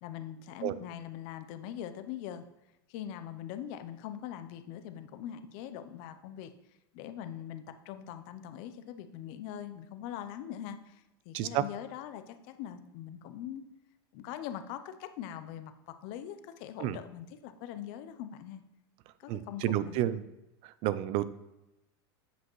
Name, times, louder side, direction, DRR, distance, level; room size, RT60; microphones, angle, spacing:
voice 1, 0.0-2.4 2.9-6.5 6.9-13.6 14.1-18.6 19.2-20.1, left 10 dB, 55° left, 10 dB, 0.6 m, -42 dB
voice 2, 19.3-20.2 20.8-21.2, right 13 dB, 45° right, 16 dB, 0.4 m, -30 dB
8.1 x 5.1 x 3.1 m, 0.95 s
hypercardioid pair, 115°, 13 cm